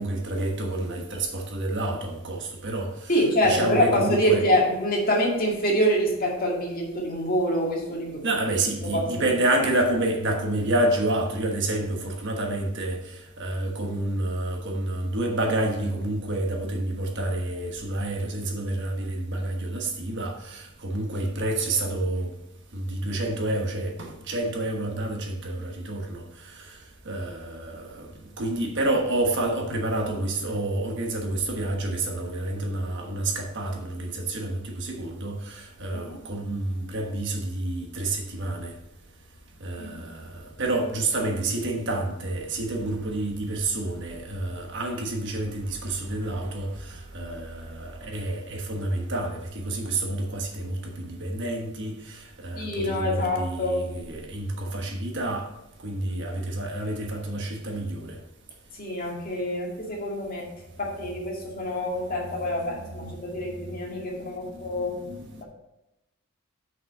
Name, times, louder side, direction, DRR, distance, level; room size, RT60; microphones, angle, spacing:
voice 1, 0.0-3.1 3.4-4.5 8.2-22.3 22.7-38.7 39.6-55.5 55.8-58.2 62.1-65.4, right 2 dB, 55° right, 1.3 m, -29 dB
voice 2, 3.1-8.2 8.9-9.0 35.9-36.2 39.8-40.0 52.5-53.8 58.8-60.5 60.8-65.0, equal, 40° left, 2.1 m, -26 dB
6.2 x 5.6 x 5.3 m
head